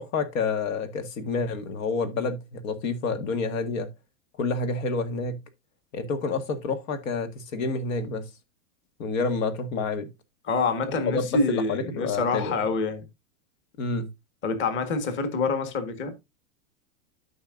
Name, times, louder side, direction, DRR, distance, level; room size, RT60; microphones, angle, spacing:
voice 1, 0.0-3.9 4.4-5.4 5.9-8.3 9.0-10.1 11.1-12.6 13.8-14.1, left 4 dB, 65° left, 1.8 m, -28 dB
voice 2, 10.4-13.1 14.4-16.1, left 3 dB, 25° left, 1.6 m, -26 dB
13.5 x 5.6 x 2.5 m
supercardioid pair, 140°, 43 cm